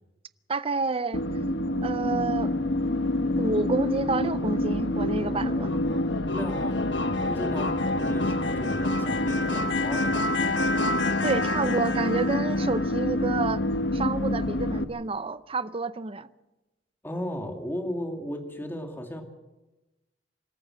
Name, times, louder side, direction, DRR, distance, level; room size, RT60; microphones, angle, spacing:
voice 1, 0.5-1.2 1.8-2.5 3.4-5.7 11.2-13.6 13.9-16.3, right 3 dB, 30° right, 0.6 m, -29 dB
sound 1, 1.1-14.8, left 1 dB, 75° left, 1.2 m, -26 dB
voice 2, 6.3-10.7 17.0-19.2, equal, 15° left, 2.5 m, -36 dB
25.5 x 14.0 x 7.6 m
head